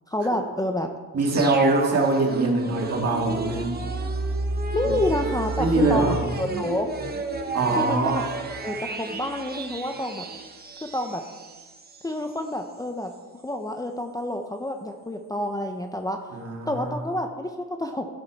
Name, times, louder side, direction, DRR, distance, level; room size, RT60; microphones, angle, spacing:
voice 1, 0.1-0.9 4.7-6.9 7.7-8.2 8.6-10.3 10.9-11.2 12.0-13.1 13.4-16.2 16.7-18.1, left 1 dB, 10° left, 4 dB, 0.7 m, -28 dB
voice 2, 1.1-3.7 4.9-5.0 5.6-6.2 7.5-8.3 16.3-16.9, right 2 dB, 50° right, 0 dB, 2.2 m, -23 dB
sound 1, 1.3-12.1 12.4-12.5, right 3 dB, 30° right, 1.0 m, -31 dB
15.0 x 7.0 x 4.1 m, 1.4 s
cardioid pair, 120°, 33 cm